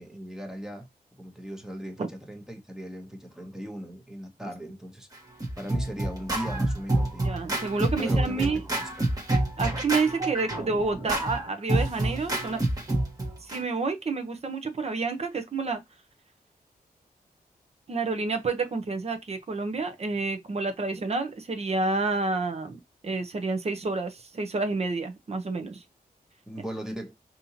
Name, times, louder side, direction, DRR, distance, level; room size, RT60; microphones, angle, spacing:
voice 1, 0.0-5.1 5.5-7.2 7.9-9.1 26.5-27.1, equal, 5° right, 1.0 m, -38 dB
Scratching (performance technique), 5.1-13.6, right 1 dB, 25° right, 1.3 m, -28 dB
voice 2, 7.2-8.6 9.6-12.6 13.4-15.8 17.9-25.8, right 3 dB, 40° right, 0.8 m, -29 dB
5.3 x 2.8 x 2.8 m
wide cardioid pair, 165°, 16 cm